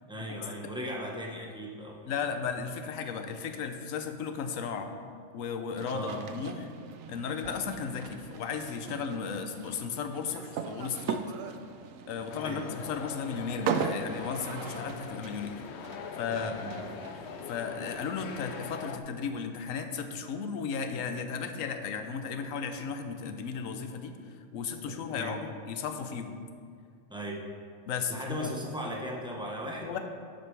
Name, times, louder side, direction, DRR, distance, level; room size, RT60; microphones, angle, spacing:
voice 1, 0.1-2.3 5.9-6.3 12.4-12.7 16.3-17.0 24.9-25.4 27.1-27.4 28.1-30.0, equal, 5° right, -1 dB, 0.9 m, -38 dB
voice 2, 2.0-4.9 5.3-6.7 7.1-11.3 12.1-15.6 16.2-16.7 17.5-26.4 27.9-28.5 29.8-30.0, left 6 dB, 90° left, 7 dB, 1.1 m, -35 dB
sound 1, 5.8-18.7, right 6 dB, 90° right, 1.0 m, -39 dB
sound 2, 12.3-19.0, left 6 dB, 65° left, 0.8 m, -42 dB
11.0 x 7.8 x 3.4 m, 2.3 s
omnidirectional pair, 1.3 m